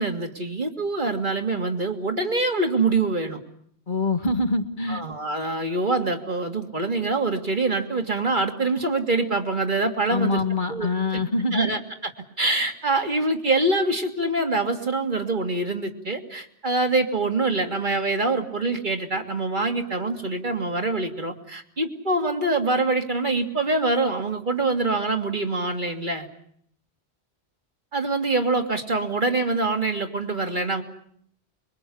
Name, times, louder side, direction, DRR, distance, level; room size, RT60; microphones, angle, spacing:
voice 1, 0.0-3.4 4.9-10.4 10.7-10.9 11.5-12.1 12.4-26.3 27.9-30.8, right 2 dB, 50° right, 4 dB, 2.3 m, -25 dB
voice 2, 3.9-5.0 10.1-11.7, left 3 dB, 50° left, 6 dB, 1.7 m, -24 dB
25.0 x 22.5 x 8.5 m, 0.66 s
omnidirectional pair, 1.1 m